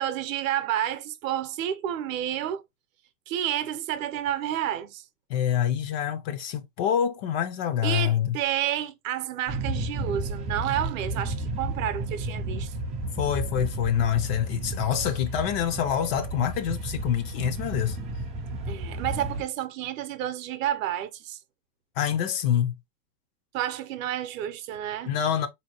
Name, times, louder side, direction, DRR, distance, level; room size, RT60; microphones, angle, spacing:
voice 1, 0.0-2.6 3.3-5.0 7.8-12.7 18.7-21.4 23.5-25.1, right 11 dB, 55° right, 0.7 m, -30 dB
voice 2, 5.3-8.4 13.2-18.0 22.0-22.7 25.0-25.5, left 9 dB, 40° left, 0.5 m, -26 dB
sound 1, 9.5-19.4, right 2 dB, 15° right, 0.3 m, -32 dB
4.2 x 2.8 x 2.8 m
hypercardioid pair, 110°, 48 cm